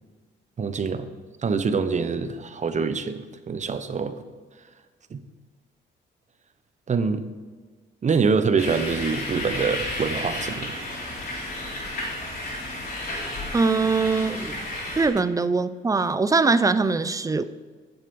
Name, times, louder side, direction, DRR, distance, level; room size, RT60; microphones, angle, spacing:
voice 1, 0.6-1.1 1.4-4.2 5.1-5.2 6.9-7.2 8.0-10.8, right 5 dB, 35° right, 10 dB, 0.9 m, -25 dB
sound 1, 8.6-15.1, left 1 dB, 50° left, 3.6 m, -32 dB
voice 2, 13.5-14.7 15.0-17.4, right 4 dB, 15° right, 13 dB, 0.5 m, -22 dB
9.7 x 7.4 x 5.4 m, 1.5 s
cardioid pair, 90°, 20 cm